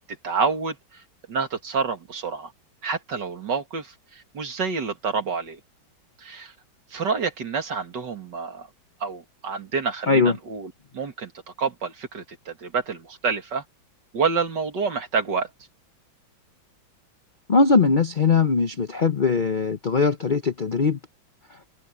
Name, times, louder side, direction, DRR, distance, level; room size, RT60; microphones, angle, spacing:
voice 1, 0.2-0.8 1.3-2.5 2.8-3.9 4.3-5.6 6.2-6.5 6.9-8.7 9.0-11.3 11.6-13.6 14.1-15.5, right 5 dB, 60° right, 2.8 m, -28 dB
voice 2, 10.1-10.4 17.5-21.0, left 4 dB, 85° left, 0.4 m, -20 dB
omnidirectional pair, 2.2 m